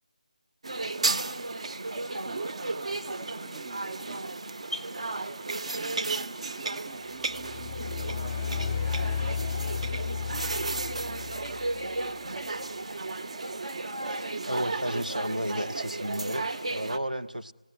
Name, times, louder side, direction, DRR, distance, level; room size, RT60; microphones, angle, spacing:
sound 1, 0.6-17.0, right 2 dB, 55° right, 0.9 m, -34 dB
voice 1, 2.2-4.4 5.0-8.8 9.5-12.8, right 4 dB, 25° right, 0.8 m, -48 dB
sound 2, 7.3-12.0, left 7 dB, 15° left, 0.8 m, -33 dB
voice 2, 14.1-17.5, right 1 dB, 85° right, 1.0 m, -33 dB
28.0 x 17.0 x 9.7 m
figure-of-eight pair, 160°, 4 cm